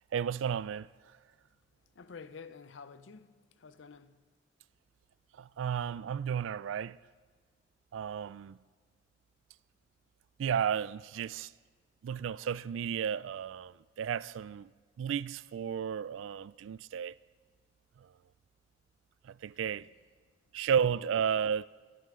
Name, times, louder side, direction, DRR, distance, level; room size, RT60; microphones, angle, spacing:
voice 1, 0.1-0.9 5.3-7.0 7.9-8.6 10.4-11.5 12.0-14.7 15.0-17.2 18.0-18.1 19.2-19.9 20.5-21.6, right 8 dB, 90° right, 0.3 m, -33 dB
voice 2, 1.9-4.2, left 5 dB, 75° left, 0.6 m, -50 dB
22.5 x 11.0 x 3.7 m
head